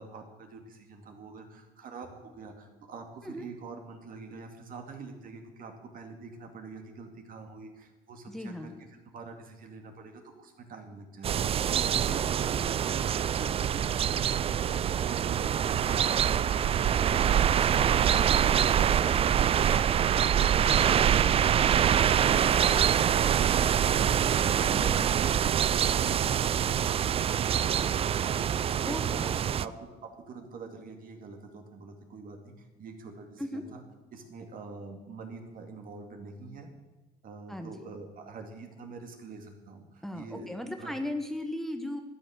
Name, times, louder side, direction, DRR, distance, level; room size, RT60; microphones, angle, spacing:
voice 1, 0.0-8.7 9.1-22.5 22.9-29.3 29.6-29.7 30.0-33.8 34.1-36.7 37.2-40.5 40.8-40.9, right 4 dB, 55° right, 4 dB, 2.3 m, -45 dB
voice 2, 8.3-8.7 12.1-12.2 20.7-21.3 24.6-25.2 28.8-29.7 33.4-33.6 37.5-37.8 40.0-42.0, left 1 dB, ahead, 5 dB, 1.0 m, -37 dB
sound 1, 11.2-29.7, right 9 dB, 35° right, 0.3 m, -25 dB
12.5 x 10.0 x 6.5 m, 1.1 s
cardioid pair, 110°, 17 cm